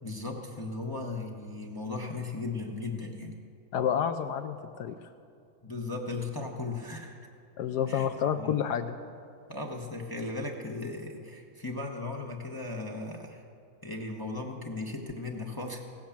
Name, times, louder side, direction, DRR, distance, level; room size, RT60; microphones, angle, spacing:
voice 1, 0.0-3.3 5.6-7.3 7.9-8.1 8.4-8.6 9.5-13.4 13.8-15.8, left 3 dB, 35° left, 0 dB, 0.3 m, -37 dB
voice 2, 3.7-5.0 7.6-9.0, left 8 dB, 75° left, 8 dB, 0.9 m, -29 dB
16.0 x 9.4 x 7.2 m, 2.4 s
omnidirectional pair, 2.2 m